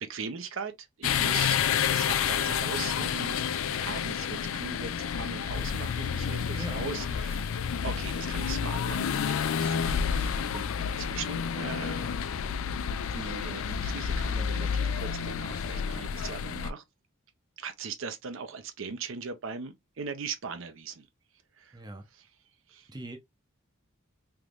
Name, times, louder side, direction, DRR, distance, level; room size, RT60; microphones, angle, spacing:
voice 1, 0.0-7.5 7.8-12.0 13.1-16.8 17.6-21.1 21.6-21.8 22.1-22.3 22.7-22.9, right 5 dB, 65° right, 0.6 m, -40 dB
sound 1, 1.0-16.7, left 7 dB, 70° left, 0.4 m, -30 dB
voice 2, 6.6-7.2 21.7-22.1 22.9-23.2, right 1 dB, 20° right, 0.6 m, -42 dB
3.5 x 3.0 x 2.4 m
head